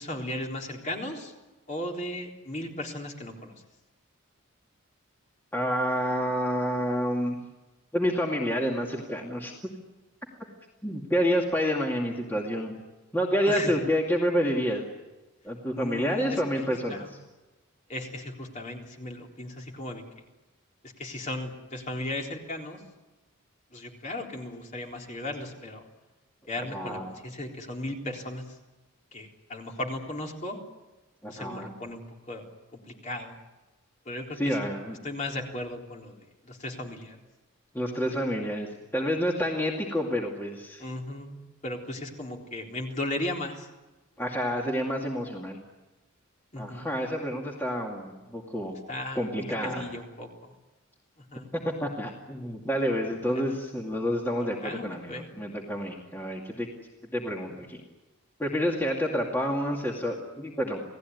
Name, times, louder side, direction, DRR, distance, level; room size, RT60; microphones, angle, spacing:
voice 1, 0.0-1.3 1.7-3.6 13.5-13.8 15.7-16.4 16.9-17.1 17.9-20.0 20.8-22.8 23.7-25.8 26.5-28.6 29.1-30.6 31.3-32.0 32.3-32.4 32.7-33.4 34.1-34.7 35.0-37.2 40.8-43.7 46.5-46.9 48.9-50.5 51.2-51.5 53.3-53.5 54.4-55.3, left 1 dB, 35° left, 0 dB, 3.8 m, -36 dB
voice 2, 5.5-7.4 7.9-9.5 10.8-12.7 13.1-14.8 15.4-17.0 26.6-27.0 31.2-31.7 34.4-35.0 37.7-40.8 44.2-45.6 46.6-48.8 49.2-49.8 51.6-56.7 57.1-57.8 58.4-60.8, equal, 10° left, -1 dB, 2.4 m, -28 dB
29.0 x 18.0 x 9.5 m, 1.1 s
head